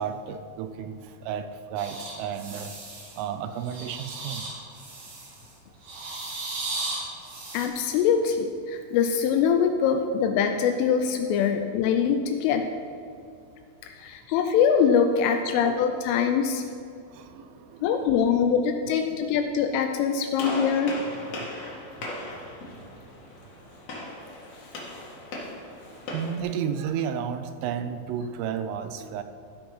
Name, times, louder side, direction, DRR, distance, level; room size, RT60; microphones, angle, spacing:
voice 1, 0.0-2.7 3.2-4.5 15.5-15.8 17.1-18.1 19.1-19.2 21.2-21.5 26.1-29.2, right 8 dB, 85° right, 9 dB, 3.1 m, -33 dB
sound 1, 1.8-3.2 3.6-5.5 5.8-7.7, right 2 dB, 55° right, 2.1 m, -36 dB
voice 2, 7.5-12.7 13.8-16.7 17.8-20.9, left 7 dB, 85° left, 6 dB, 2.9 m, -23 dB
Gunshot gunfire, 20.4-26.4, left 1 dB, 50° left, 2.4 m, -37 dB
15.5 x 5.7 x 5.6 m, 2.5 s
omnidirectional pair, 5.9 m